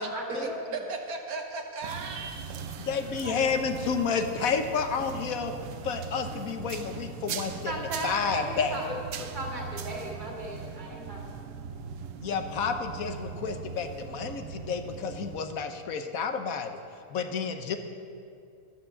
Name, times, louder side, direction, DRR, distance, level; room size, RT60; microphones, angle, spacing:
voice 1, 0.0-0.7 7.7-11.2 13.7-13.8, right 1 dB, 30° right, -2 dB, 2.3 m, -36 dB
voice 2, 0.7-3.4, right 4 dB, 85° right, 3 dB, 1.6 m, -37 dB
sound 1, 1.8-15.4, right 6 dB, 65° right, 1.0 m, -40 dB
voice 3, 2.8-5.5 5.8-8.8 12.2-16.8 17.1-17.8, left 6 dB, 75° left, 7 dB, 1.3 m, -30 dB
12.5 x 9.7 x 7.1 m, 2.5 s
omnidirectional pair, 1.5 m